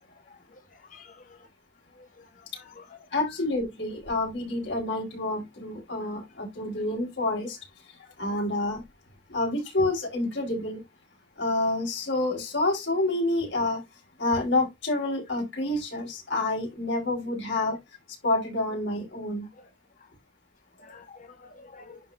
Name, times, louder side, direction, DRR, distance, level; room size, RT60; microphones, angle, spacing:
voice 1, 0.9-1.4 2.0-2.3 2.5-2.8 8.0-8.1 20.8-22.0, left 4 dB, 45° left, 1.4 m, -50 dB
voice 2, 3.1-7.6 7.8-8.8 9.3-10.8 11.4-13.8 14.2-17.8 18.2-19.5, left 2 dB, 80° left, 4.4 m, -28 dB
11.5 x 4.0 x 2.7 m
head